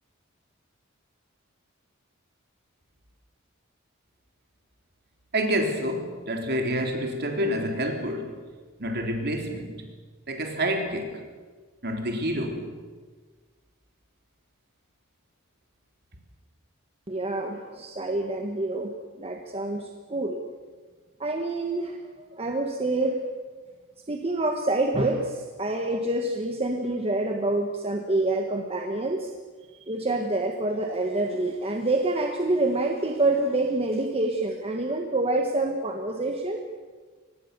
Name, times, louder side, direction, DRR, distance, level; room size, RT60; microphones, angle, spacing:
voice 1, 5.3-8.4 8.8-9.9 10.3-11.2 11.8-12.7, equal, 50° right, 3 dB, 3.5 m, -28 dB
voice 2, 17.1-20.4 21.2-23.2 24.1-29.3 29.9-36.6, right 2 dB, 30° right, 3 dB, 1.5 m, -27 dB
24.0 x 19.0 x 6.9 m, 1.4 s
head